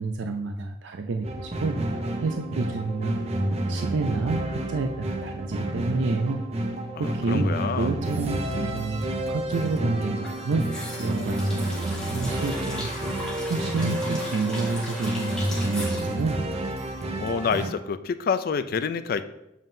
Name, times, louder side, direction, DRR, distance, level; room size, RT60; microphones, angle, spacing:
voice 1, 0.0-1.8 2.2-3.2 3.7-6.5 7.0-10.7 11.0-11.8 12.1-12.9 13.5-16.4, right 3 dB, 75° right, 5 dB, 0.4 m, -29 dB
sound 1, 1.2-17.7, right 1 dB, 35° right, 0.7 m, -30 dB
voice 2, 7.0-7.9 17.2-19.2, left 6 dB, 50° left, 12 dB, 0.3 m, -28 dB
sound 2, 10.2-17.3 17.5-17.6, left 1 dB, 5° left, 1.5 m, -37 dB
7.4 x 5.4 x 2.7 m, 0.89 s
head